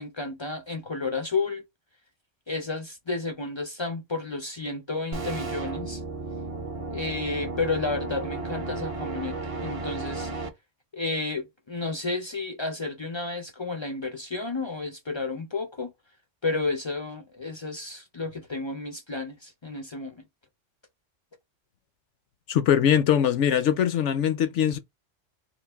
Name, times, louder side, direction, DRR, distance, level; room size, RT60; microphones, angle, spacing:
voice 1, 0.0-1.6 2.5-6.0 6.9-10.3 10.9-15.9 16.4-20.2, left 3 dB, 40° left, 0.4 m, -31 dB
sound 1, 5.1-10.5, right 3 dB, 40° right, 0.5 m, -33 dB
voice 2, 22.5-24.8, left 9 dB, 75° left, 0.9 m, -22 dB
3.8 x 2.5 x 3.4 m
omnidirectional pair, 1.3 m